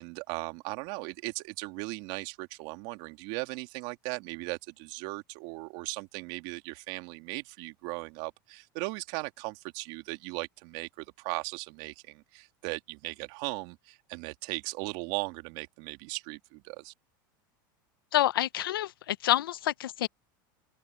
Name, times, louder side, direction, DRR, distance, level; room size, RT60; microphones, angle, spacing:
voice 1, 0.0-16.9, right 26 dB, 60° right, 2.6 m, -38 dB
voice 2, 18.1-20.1, left 13 dB, 85° left, 0.7 m, -27 dB
open air
hypercardioid pair, 105°, 11 cm